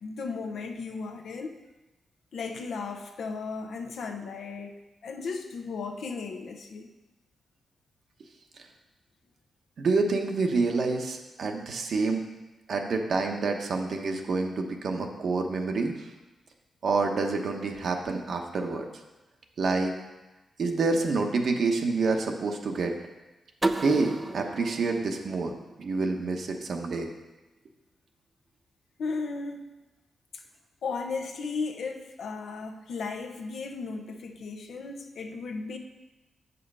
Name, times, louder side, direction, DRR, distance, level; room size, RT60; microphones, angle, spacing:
voice 1, 0.0-1.5 2.3-4.7 5.0-6.9 29.0-29.6 30.3-30.4 30.8-35.8, left 4 dB, 75° left, 4 dB, 0.9 m, -35 dB
voice 2, 9.8-12.2 12.7-15.9 16.8-18.9 19.6-19.9 20.6-22.9 23.8-25.5 25.8-27.1, right 3 dB, 65° right, 3 dB, 1.0 m, -27 dB
sound 1, 23.6-26.4, right 2 dB, 25° right, 0.5 m, -33 dB
7.7 x 5.6 x 5.5 m, 1.1 s
cardioid pair, 80°, 0 cm